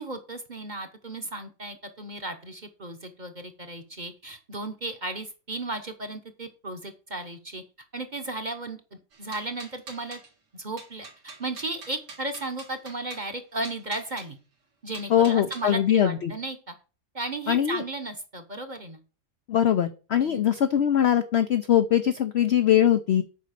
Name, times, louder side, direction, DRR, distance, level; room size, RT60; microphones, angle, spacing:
voice 1, 0.0-7.6 7.9-8.8 9.2-10.2 10.5-11.1 11.4-14.4 14.8-16.7 17.1-19.0 20.2-20.5, right 2 dB, 35° right, 8 dB, 0.9 m, -35 dB
sound 1, 9.1-10.3 10.8-13.3 13.6-14.3 14.9-15.7, right 4 dB, 85° right, 2.8 m, -45 dB
voice 2, 15.1-16.3 17.5-17.8 19.5-23.2, left 10 dB, 65° left, 10 dB, 0.6 m, -22 dB
8.4 x 5.1 x 6.5 m, 0.35 s
omnidirectional pair, 1.8 m